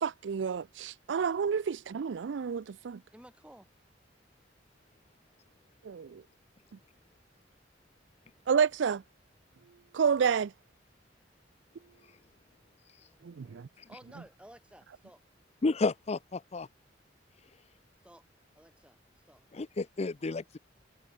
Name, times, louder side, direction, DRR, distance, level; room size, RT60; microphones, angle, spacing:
voice 1, 0.0-3.0 5.8-6.2 8.5-9.0 9.9-10.5 13.2-13.7, right 6 dB, 75° right, 0.4 m, -29 dB
voice 2, 3.1-3.7 13.1-15.2 18.0-18.2 18.5-19.4 20.4-20.6, right 1 dB, 5° right, 5.9 m, -56 dB
voice 3, 15.6-16.7 19.5-20.6, left 3 dB, 35° left, 0.5 m, -32 dB
head